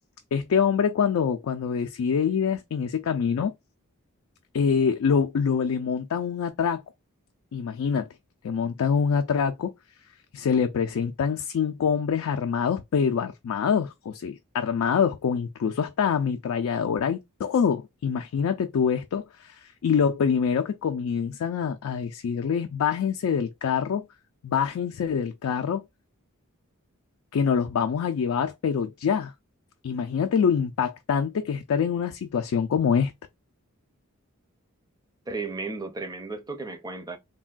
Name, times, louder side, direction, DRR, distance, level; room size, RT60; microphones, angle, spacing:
voice 1, 0.3-3.5 4.5-6.8 7.5-8.1 8.4-9.7 10.3-24.0 24.4-25.8 27.3-29.3 29.8-33.1, left 6 dB, 65° left, 0.3 m, -25 dB
voice 2, 35.3-37.2, right 3 dB, 15° right, 0.6 m, -34 dB
3.4 x 2.2 x 2.3 m
head